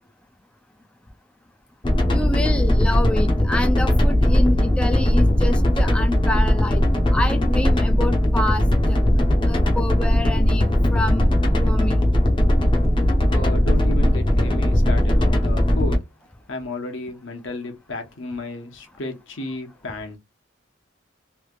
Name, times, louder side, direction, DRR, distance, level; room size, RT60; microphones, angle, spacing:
sound 1, 1.8-15.9, left 1 dB, 25° left, 0.8 m, -18 dB
voice 1, 2.1-6.8 7.1-9.0 9.5-12.0, left 1 dB, 5° left, 0.4 m, -27 dB
voice 2, 13.3-16.0 16.5-20.2, left 2 dB, 70° left, 1.0 m, -33 dB
3.2 x 2.8 x 2.4 m
head